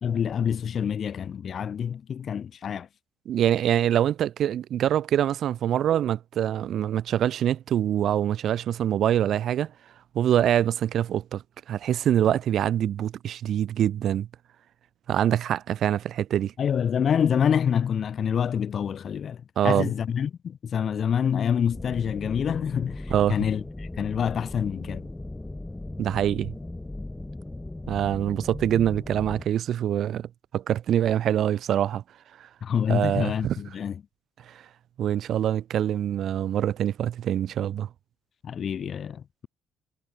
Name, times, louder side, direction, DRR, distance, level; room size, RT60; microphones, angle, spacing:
voice 1, 0.0-2.9 16.6-25.1 32.6-34.0 38.4-39.5, left 8 dB, 40° left, 0.9 m, -27 dB
voice 2, 3.3-9.7 10.1-11.4 11.7-14.3 15.1-16.5 19.6-19.9 23.1-23.4 26.0-26.5 27.9-32.0 32.9-33.6 34.5-34.6 35.0-37.9, right 10 dB, 55° right, 0.9 m, -24 dB
sound 1, 21.7-29.5, left 2 dB, 10° left, 1.2 m, -38 dB
cardioid pair, 140°, 0 cm